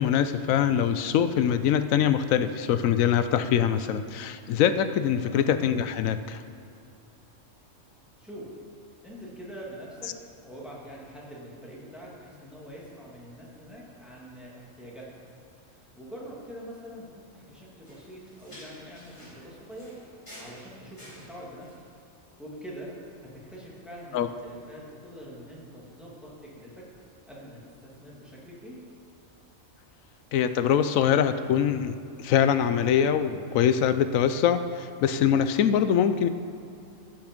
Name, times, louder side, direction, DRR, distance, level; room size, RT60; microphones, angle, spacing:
voice 1, 0.0-6.4 24.1-24.3 30.3-36.3, left 9 dB, 80° left, 11 dB, 1.0 m, -23 dB
voice 2, 9.0-10.1 10.4-15.3 15.7-20.0 20.4-21.7 22.4-22.9 23.2-26.7 27.3-28.8, equal, ahead, -6 dB, 2.2 m, -44 dB
sound 1, 17.9-21.9, equal, 20° left, 3.0 m, -50 dB
15.5 x 5.9 x 5.2 m, 2.6 s
omnidirectional pair, 1.4 m